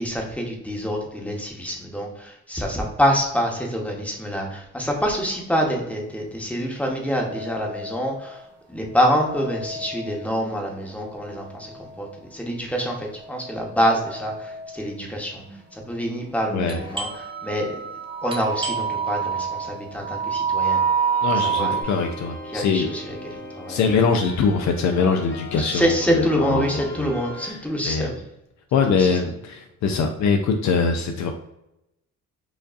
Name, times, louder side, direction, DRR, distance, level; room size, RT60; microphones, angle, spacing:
voice 1, 0.0-8.4 8.7-15.4 15.7-17.7 18.2-20.8 21.4-21.7 22.5-23.8 25.6-28.2 28.9-29.2, equal, 5° left, 0 dB, 0.9 m, -26 dB
sound 1, 7.1-8.4 8.9-10.6 11.0-12.1 13.1-14.9 15.5-15.6 16.5-16.7 17.0-21.8, right 6 dB, 60° right, 1.3 m, -28 dB
Doorbell, 16.7-22.1, equal, 15° right, 0.6 m, -39 dB
sound 2, 20.6-27.5, left 2 dB, 40° left, 0.9 m, -39 dB
voice 2, 21.2-22.9 23.7-27.1 27.4-27.6 27.8-28.1 28.7-31.3, left 5 dB, 70° left, 4 dB, 0.5 m, -23 dB
4.9 x 2.6 x 2.4 m, 0.87 s
cardioid pair, 90°, 30 cm